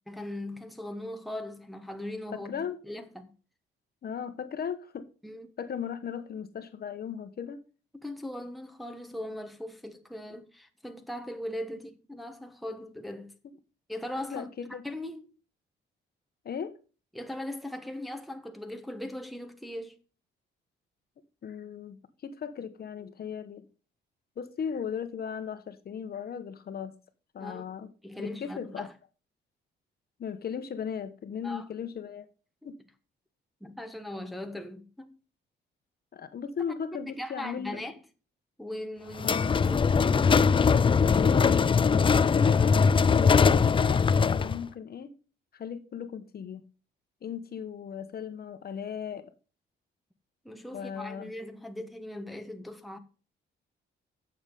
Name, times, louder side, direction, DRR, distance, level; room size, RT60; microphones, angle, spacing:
voice 1, 0.1-2.5 2.8-3.3 5.2-5.5 7.9-13.3 13.9-15.3 17.1-20.0 27.4-27.7 28.0-28.9 31.4-31.6 33.6-35.1 36.9-38.0 38.6-39.8 50.4-53.0, left 1 dB, ahead, 1.3 m, -39 dB
voice 2, 2.3-2.8 4.0-5.1 5.6-7.6 13.4-13.5 14.3-14.8 16.4-16.7 21.4-23.6 24.4-27.0 27.3-27.9 28.2-28.9 30.2-32.3 32.6-32.8 36.1-37.8 39.2-39.5 41.1-45.1 45.5-46.6 47.2-49.3 50.7-51.3, left 7 dB, 50° left, 1.1 m, -37 dB
sound 1, 39.2-44.6, left 5 dB, 25° left, 0.5 m, -21 dB
9.6 x 7.1 x 5.2 m
cardioid pair, 90°, 20 cm